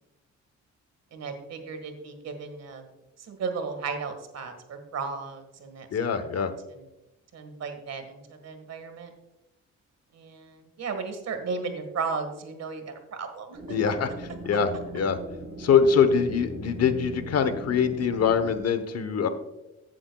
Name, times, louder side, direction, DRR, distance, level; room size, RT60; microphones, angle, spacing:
voice 1, 1.1-2.9 3.2-5.9 6.3-6.8 7.3-9.1 10.1-13.8, right 5 dB, 60° right, 7 dB, 1.7 m, -35 dB
voice 2, 5.9-6.5 13.7-15.2 15.6-19.3, left 6 dB, 55° left, 10 dB, 1.0 m, -24 dB
sound 1, 13.5-18.6, right 2 dB, 40° right, 3.1 m, -40 dB
14.5 x 7.8 x 2.3 m, 0.97 s
cardioid pair, 90°, 30 cm